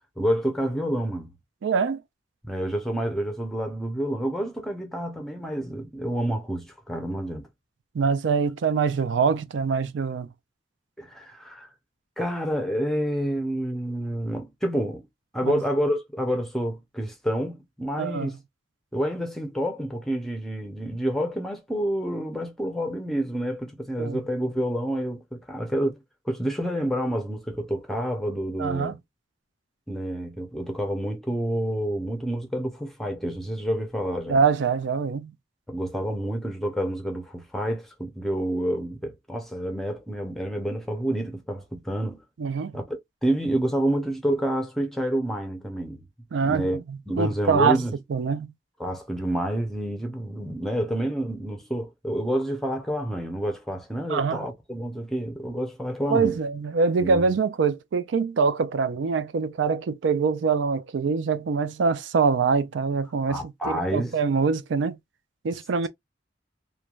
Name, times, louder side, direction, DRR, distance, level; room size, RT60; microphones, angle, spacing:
voice 1, 0.2-1.3 2.4-7.5 11.0-11.7 12.2-15.1 15.3-18.4 18.9-29.0 29.9-34.4 35.7-42.2 42.7-46.0 46.4-46.8 47.1-47.9 48.8-56.4 57.0-57.3 63.3-64.1, equal, ahead, 0.6 m, -28 dB
voice 2, 1.6-2.0 7.9-10.3 15.4-15.5 18.0-18.3 24.0-24.2 28.6-29.0 34.3-35.3 42.4-42.8 46.3-47.8 48.1-48.5 54.1-54.4 56.1-65.0 65.4-65.9, right 5 dB, 85° right, 0.4 m, -24 dB
3.1 x 2.2 x 2.3 m
head